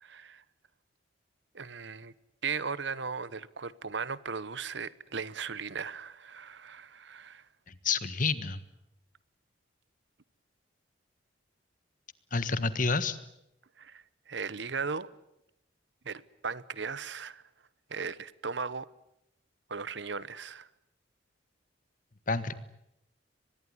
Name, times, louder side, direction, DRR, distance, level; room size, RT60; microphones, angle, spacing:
voice 1, 0.0-0.4 1.5-2.1 2.4-7.4 13.8-15.1 16.0-17.4 17.9-18.9 19.7-20.7, right 5 dB, 70° right, 1.0 m, -37 dB
voice 2, 7.8-8.6 12.3-13.2 22.3-22.5, left 4 dB, 45° left, 1.5 m, -28 dB
24.5 x 20.5 x 9.7 m
head